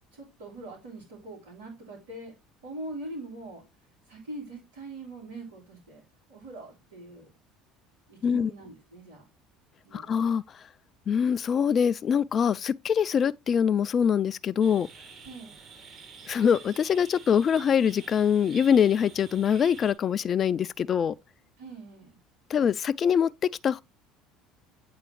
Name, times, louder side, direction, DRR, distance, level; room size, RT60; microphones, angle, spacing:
voice 1, 0.1-2.3 2.6-3.6 4.1-6.0 6.3-7.3 8.1-9.3 9.8-10.1 15.2-15.6 21.6-22.2, right 2 dB, 90° right, 3.6 m, -42 dB
voice 2, 9.9-10.4 11.1-14.9 16.3-21.1 22.5-23.8, left 7 dB, 40° left, 0.4 m, -24 dB
sound 1, 14.6-19.9, right 5 dB, 45° right, 2.3 m, -48 dB
8.7 x 4.1 x 3.1 m
hypercardioid pair, 75°, 0 cm